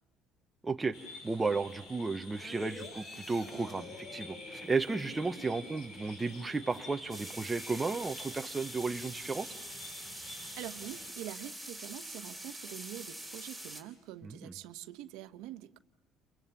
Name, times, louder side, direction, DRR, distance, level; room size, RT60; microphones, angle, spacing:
voice 1, 0.6-9.5 14.2-14.5, right 4 dB, 15° right, 6 dB, 0.8 m, -34 dB
sound 1, 0.9-11.1, left 3 dB, 85° left, 6.0 m, -51 dB
sound 2, 2.4-8.5 8.9-9.1, left 2 dB, 40° left, 7.4 m, -49 dB
sound 3, 7.1-13.8, right 1 dB, 5° left, 3.2 m, -44 dB
voice 2, 10.6-15.8, right 14 dB, 85° right, 9 dB, 1.1 m, -45 dB
30.0 x 23.5 x 7.0 m, 0.94 s
cardioid pair, 155°, 0 cm